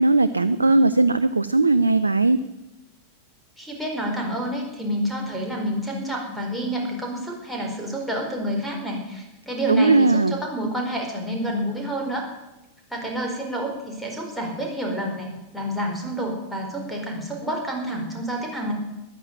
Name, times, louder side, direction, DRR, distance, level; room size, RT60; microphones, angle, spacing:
voice 1, 0.0-2.4 9.7-10.4, right 2 dB, 80° right, 14 dB, 0.5 m, -18 dB
voice 2, 3.6-12.2 12.9-18.7, equal, ahead, -2 dB, 4.4 m, -29 dB
14.0 x 11.0 x 9.2 m, 0.97 s
figure-of-eight pair, 90°, 0 cm